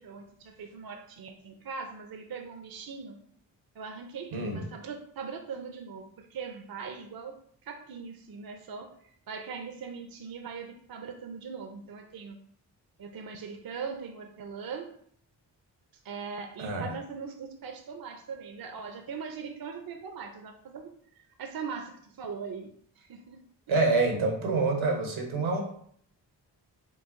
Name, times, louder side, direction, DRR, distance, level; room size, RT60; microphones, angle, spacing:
voice 1, 0.0-3.2 3.7-12.4 13.0-14.9 16.0-23.4, right 5 dB, 50° right, 5 dB, 0.6 m, -41 dB
voice 2, 16.6-16.9 23.7-25.6, right 3 dB, 80° right, 2 dB, 1.2 m, -26 dB
4.7 x 2.3 x 3.6 m, 0.62 s
supercardioid pair, 40°, 46 cm